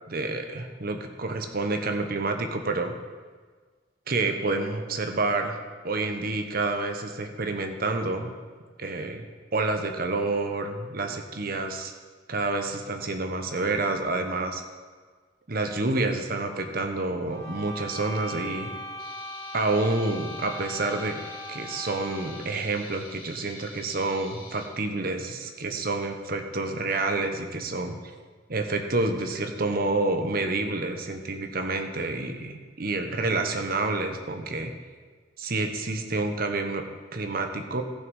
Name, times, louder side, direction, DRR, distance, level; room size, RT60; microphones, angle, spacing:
voice 1, 0.1-2.9 4.1-5.6 5.8-8.3 8.8-11.9 12.3-14.6 15.5-18.7 19.5-21.2 21.5-28.0 28.5-34.7 35.4-36.8 37.1-37.8, right 2 dB, 55° right, 5 dB, 1.0 m, -28 dB
sound 1, 17.3-22.6, equal, 25° left, 1.8 m, -39 dB
sound 2, 19.0-24.7, left 3 dB, 50° left, 2.3 m, -47 dB
14.5 x 6.2 x 5.5 m, 1.5 s
head